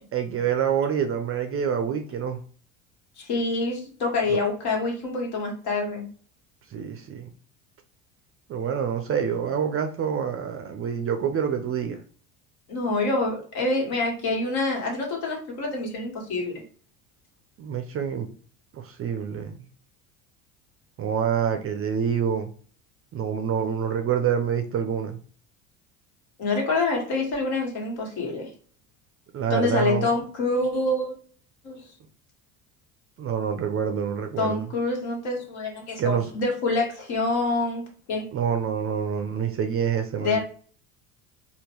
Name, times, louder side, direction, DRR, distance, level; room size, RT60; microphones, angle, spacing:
voice 1, 0.1-2.4 4.3-4.4 6.7-7.3 8.5-12.0 17.6-18.3 18.7-19.7 21.0-22.5 23.1-25.2 29.3-30.1 33.2-34.7 36.0-36.3 38.3-40.4, right 8 dB, 35° right, 6 dB, 0.5 m, -26 dB
voice 2, 3.2-6.1 12.7-16.6 26.4-28.5 29.5-31.1 31.6-31.8 34.4-37.8 38.1-38.3 40.2-40.4, left 3 dB, 60° left, 0 dB, 1.5 m, -26 dB
3.5 x 2.2 x 2.9 m, 0.43 s
hypercardioid pair, 70°, 43 cm